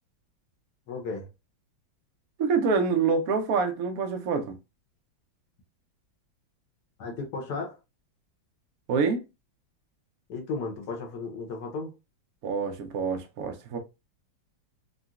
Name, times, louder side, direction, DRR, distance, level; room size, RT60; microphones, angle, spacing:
voice 1, 0.9-1.3 7.0-7.8 10.3-11.9, left 4 dB, 65° left, 1.2 m, -34 dB
voice 2, 2.4-4.6 8.9-9.2 12.4-13.8, right 5 dB, 65° right, 0.9 m, -26 dB
3.8 x 2.1 x 2.4 m
omnidirectional pair, 2.1 m